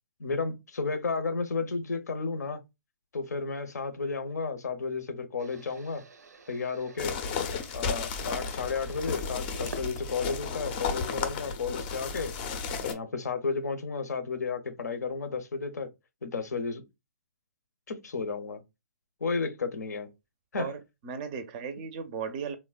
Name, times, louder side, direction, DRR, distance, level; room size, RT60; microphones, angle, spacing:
voice 1, 0.2-2.6 3.1-6.0 6.5-7.2 7.7-12.3 12.8-15.9 16.2-16.8 17.9-18.6 19.2-20.1 20.5-20.7, left 4 dB, 80° left, 0.6 m, -32 dB
sound 1, 5.4-10.9 11.3-12.1, right 3 dB, 80° right, 0.5 m, -49 dB
sound 2, 7.0-12.9, left 5 dB, 35° left, 0.5 m, -33 dB
voice 2, 20.6-22.6, right 6 dB, 30° right, 0.4 m, -36 dB
3.2 x 2.1 x 2.2 m
hypercardioid pair, 145°, 9 cm